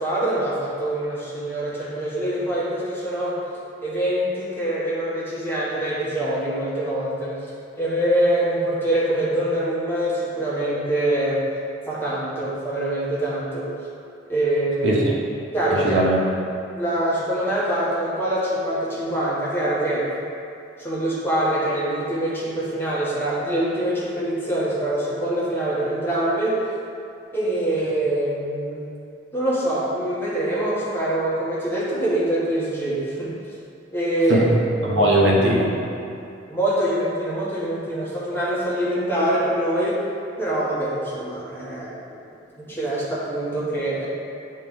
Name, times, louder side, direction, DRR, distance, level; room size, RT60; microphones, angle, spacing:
voice 1, 0.0-3.4 3.8-7.4 7.8-11.4 11.9-13.7 14.3-15.0 15.5-16.0 16.7-20.1 20.8-26.6 27.3-28.8 29.3-33.4 33.9-34.5 34.8-35.1 36.5-40.0 40.4-41.9 42.6-44.1, right 1 dB, 10° left, -8 dB, 1.3 m, -24 dB
voice 2, 14.8-15.1 15.7-16.2 34.3-35.8, right 1 dB, 70° right, -5 dB, 1.1 m, -19 dB
9.3 x 3.3 x 3.6 m, 2.5 s
head